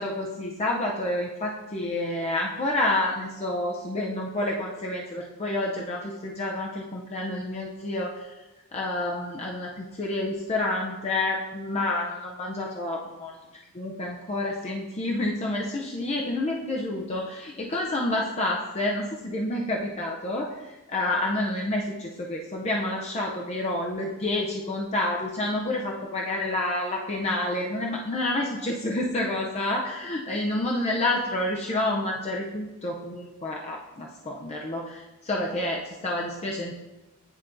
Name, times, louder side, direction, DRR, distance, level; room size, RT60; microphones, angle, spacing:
voice 1, 0.0-8.4 8.7-13.3 13.7-36.7, left 1 dB, 30° left, -1 dB, 0.5 m, -29 dB
9.7 x 4.2 x 2.6 m, 1.1 s
head